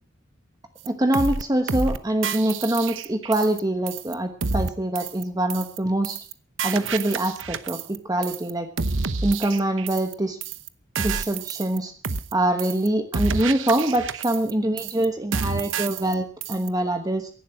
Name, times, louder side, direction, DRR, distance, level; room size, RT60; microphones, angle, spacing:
voice 1, 0.8-6.2 6.6-8.7 9.2-10.4 11.0-11.9 12.3-17.3, right 1 dB, 20° right, 7 dB, 1.1 m, -24 dB
sound 1, 0.9-1.0 1.1-1.4 1.7-2.0 2.2-3.6 3.9-4.1 4.4-4.7 5.0-5.2 5.5-5.8 6.0-6.3 6.6-8.0 8.2-8.5 8.8-10.1 10.4-10.7 11.0-11.8 12.0-12.3 12.6-12.9 13.1-14.5 14.8-15.1 15.3-16.1 16.4-16.7, right 4 dB, 80° right, 1.0 m, -29 dB
17.0 x 11.5 x 5.8 m, 0.43 s
head